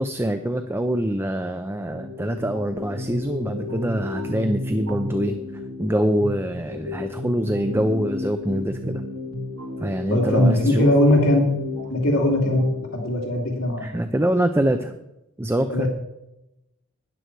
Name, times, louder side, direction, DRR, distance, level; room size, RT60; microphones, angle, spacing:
voice 1, 0.0-5.4 5.8-9.0 9.8-10.9 13.8-14.9 15.4-15.9, right 1 dB, 10° right, 8 dB, 0.5 m, -24 dB
sound 1, 1.9-12.9, left 3 dB, 70° right, 1.6 m, -32 dB
voice 2, 10.1-11.4 11.9-12.6 12.9-13.9 15.7-15.9, left 1 dB, 70° left, -1 dB, 2.7 m, -20 dB
13.0 x 10.5 x 4.7 m, 0.92 s
head